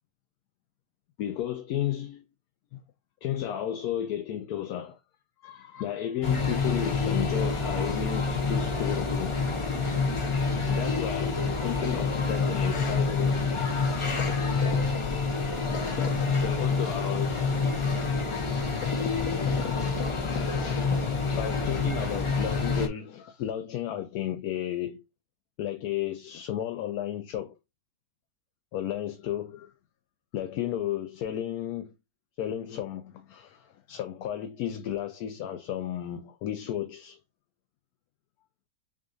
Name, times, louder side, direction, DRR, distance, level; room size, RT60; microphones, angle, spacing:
voice 1, 1.2-2.2 2.7-2.8 3.2-5.0 5.4-9.4 10.7-13.6 13.9-15.0 15.7-16.1 16.4-17.5 18.8-25.0 25.6-27.6 28.7-29.7 30.3-31.9 32.4-37.2, left 11 dB, 80° left, 1.1 m, -33 dB
sound 1, 6.2-22.9, left 4 dB, 50° left, 0.3 m, -27 dB
6.1 x 2.5 x 2.5 m
omnidirectional pair, 1.6 m